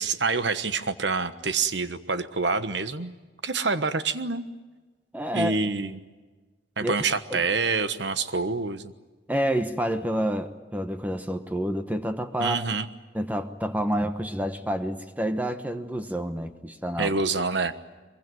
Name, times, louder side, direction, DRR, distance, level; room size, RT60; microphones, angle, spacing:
voice 1, 0.0-3.1 3.4-4.4 5.3-6.0 6.8-8.9 12.4-12.9 17.0-17.8, right 4 dB, 75° right, 11 dB, 1.3 m, -27 dB
voice 2, 5.1-5.6 6.8-6.9 7.3-7.4 9.3-12.6 13.1-17.1, equal, 10° right, 7 dB, 1.1 m, -28 dB
23.5 x 22.5 x 9.3 m, 1.3 s
head